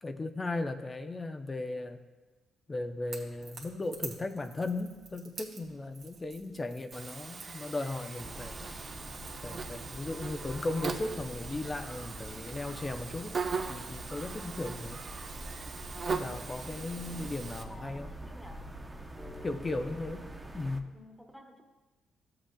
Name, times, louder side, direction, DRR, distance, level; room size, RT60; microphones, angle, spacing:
voice 1, 0.0-2.0 2.7-8.6 9.4-13.4 13.7-15.0 16.1-18.1 19.2-20.2 20.5-20.9, left 2 dB, 25° left, 7 dB, 0.6 m, -36 dB
Crackle / Crack, 3.0-11.2, right 5 dB, 60° right, 1.5 m, -50 dB
Buzz, 6.9-17.6, right 5 dB, 45° right, 0.7 m, -40 dB
sound 1, 8.2-20.8, right 1 dB, 15° right, 0.7 m, -45 dB
voice 2, 17.7-18.6 20.9-21.6, equal, 5° left, 4 dB, 1.2 m, -52 dB
14.0 x 7.6 x 2.3 m, 1.2 s
cardioid pair, 90°, 0 cm